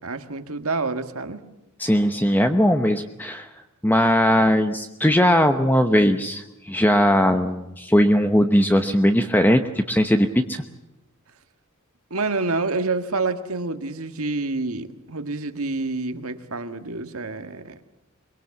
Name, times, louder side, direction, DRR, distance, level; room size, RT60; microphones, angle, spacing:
voice 1, 0.0-1.5 12.1-17.8, right 3 dB, 70° right, 9 dB, 1.7 m, -28 dB
voice 2, 1.8-3.5 3.8-10.6, equal, 10° left, 7 dB, 0.9 m, -19 dB
23.5 x 22.5 x 7.2 m, 0.94 s
head